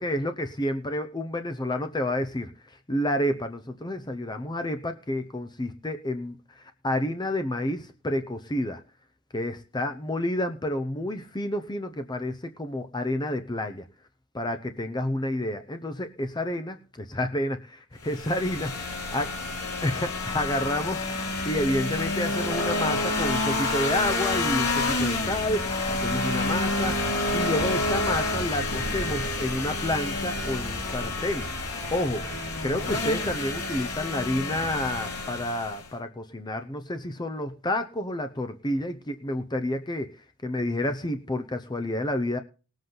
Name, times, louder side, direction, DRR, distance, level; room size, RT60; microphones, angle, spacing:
voice 1, 0.0-8.8 9.3-13.8 14.3-18.7 19.1-19.3 19.8-21.0 21.5-27.0 27.3-31.5 31.9-32.3 32.6-40.1 40.4-42.4, left 1 dB, 20° left, 8 dB, 0.7 m, -29 dB
sound 1, 18.0-35.9, left 2 dB, 85° left, 4.3 m, -29 dB
19.0 x 7.9 x 3.9 m, 0.35 s
head